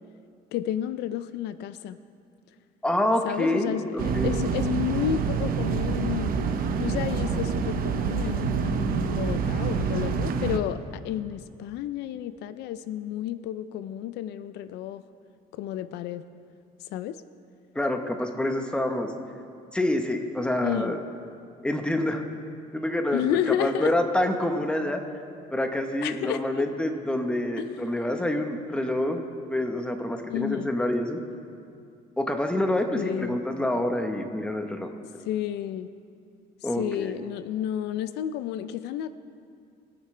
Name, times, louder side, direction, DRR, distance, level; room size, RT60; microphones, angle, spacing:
voice 1, 0.5-2.0 3.2-6.3 6.8-10.8 11.0-15.0 15.5-16.2 16.9-17.2 20.6-20.9 23.1-23.9 26.0-26.6 27.6-27.7 30.3-30.8 32.9-33.4 35.3-35.9 36.8-39.1, left 11 dB, 85° left, 13 dB, 0.5 m, -31 dB
voice 2, 2.8-4.3 17.7-19.1 19.7-21.0 21.6-22.2 22.7-25.0 25.5-29.2 29.5-31.2 32.2-34.9 36.6-37.2, left 1 dB, 5° left, 5 dB, 1.1 m, -27 dB
sound 1, 4.0-10.6, right 6 dB, 60° right, 0.9 m, -27 dB
22.5 x 9.7 x 3.3 m, 2.4 s
cardioid pair, 110°, 17 cm